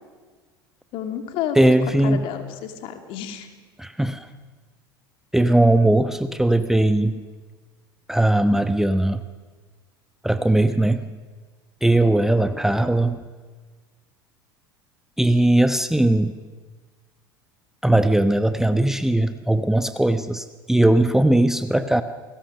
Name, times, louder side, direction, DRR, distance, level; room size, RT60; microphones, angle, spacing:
voice 1, 0.9-1.6 2.0-3.5, left 10 dB, 50° left, 6 dB, 3.0 m, -30 dB
voice 2, 1.5-2.3 3.8-4.3 5.3-7.1 8.1-9.2 10.2-11.1 11.8-13.3 15.2-16.4 17.8-22.0, right 1 dB, 5° right, 10 dB, 1.0 m, -19 dB
29.0 x 19.0 x 6.6 m, 1.4 s
figure-of-eight pair, 75°, 12 cm